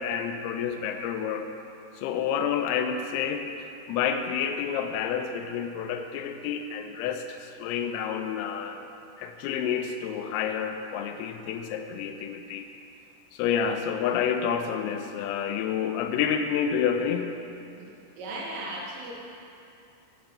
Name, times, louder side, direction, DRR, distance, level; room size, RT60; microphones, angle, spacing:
voice 1, 0.0-1.5 2.0-3.5 3.9-8.8 9.2-12.7 13.3-17.3, left 7 dB, 85° left, 7 dB, 3.2 m, -29 dB
voice 2, 17.8-19.1, right 1 dB, 75° right, -3 dB, 3.7 m, -37 dB
7.9 x 6.7 x 6.9 m, 2.6 s
omnidirectional pair, 5.9 m